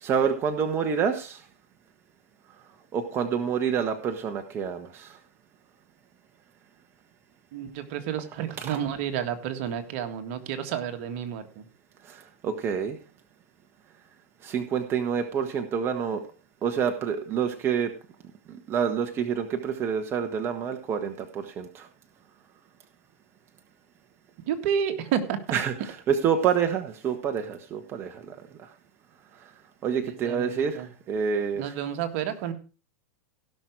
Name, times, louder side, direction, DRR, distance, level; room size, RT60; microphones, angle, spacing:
voice 1, 0.0-1.4 2.9-5.2 8.6-8.8 12.0-13.0 14.4-16.2 16.6-17.9 18.5-21.9 25.5-28.3 28.6-28.7 29.8-31.7, right 7 dB, 30° right, 6 dB, 1.3 m, -28 dB
voice 2, 7.5-11.6 24.5-25.4 30.1-30.9 31.6-32.5, right 9 dB, 55° right, 7 dB, 1.9 m, -30 dB
17.0 x 6.1 x 4.7 m, 0.34 s
hypercardioid pair, 115°, 8 cm